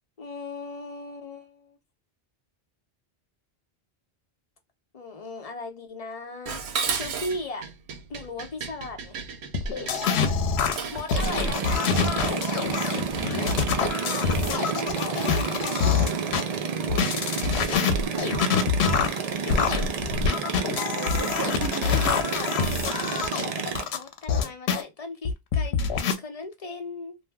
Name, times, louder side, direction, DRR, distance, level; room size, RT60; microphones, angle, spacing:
voice 1, 0.2-1.8 4.9-6.6 6.9-7.6 8.1-9.2 10.9-12.4 23.9-27.2, left 3 dB, 40° left, 0.8 m, -37 dB
Dishes pots and pans, 6.5-11.1, right 6 dB, 90° right, 0.9 m, -34 dB
sound 1, 9.5-16.4 16.9-24.8 25.2-26.1, left 6 dB, 85° left, 0.9 m, -25 dB
sound 2, 11.1-23.8, right 6 dB, 50° right, 0.5 m, -30 dB
voice 2, 18.1-18.7 20.9-22.2, right 2 dB, 20° right, 0.8 m, -36 dB
2.6 x 2.1 x 3.4 m
omnidirectional pair, 1.1 m